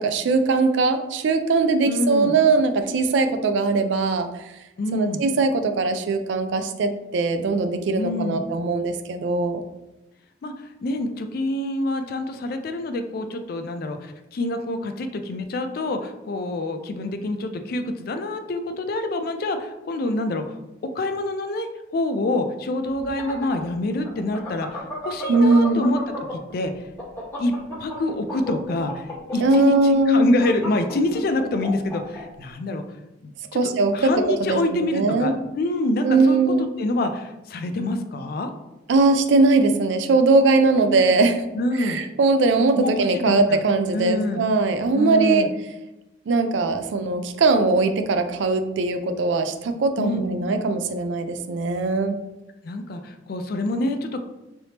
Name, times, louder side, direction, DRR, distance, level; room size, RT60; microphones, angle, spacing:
voice 1, 0.0-4.5 4.9-9.6 25.3-25.8 29.4-30.3 33.5-34.1 34.4-35.3 36.0-36.6 38.9-41.4 41.8-45.4 46.3-52.2, right 3 dB, 65° right, 8 dB, 0.3 m, -20 dB
voice 2, 1.8-2.4 4.8-5.2 7.9-8.4 10.4-10.5 10.8-20.6 20.8-26.7 27.4-27.5 27.8-32.8 33.2-36.4 36.8-38.5 41.5-42.0 42.8-43.6 43.9-44.4 44.9-45.5 50.0-50.2 52.6-54.4, left 1 dB, 50° left, 7 dB, 0.3 m, -26 dB
sound 1, 22.9-26.5 26.8-32.2, left 1 dB, 15° left, 1.3 m, -33 dB
3.3 x 2.8 x 2.8 m, 0.98 s
head